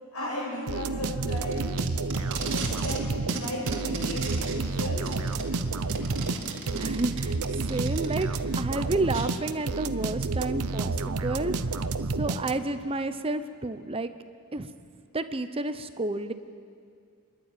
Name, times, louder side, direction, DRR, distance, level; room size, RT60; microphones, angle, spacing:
voice 1, 0.1-1.9 2.5-5.1, left 1 dB, 85° left, -3 dB, 7.8 m, -35 dB
sound 1, 0.7-12.9, right 3 dB, 85° right, 0.8 m, -30 dB
Packing tape duct tape, 1.3-3.0 3.3-8.4 9.1-9.2, right 3 dB, 55° right, 2.5 m, -36 dB
voice 2, 6.7-7.4 7.7-8.3 8.6-11.5 12.2-14.1 14.5-14.7 15.1-16.3, right 2 dB, 25° right, 10 dB, 0.7 m, -30 dB
29.0 x 11.5 x 9.2 m, 2.3 s
head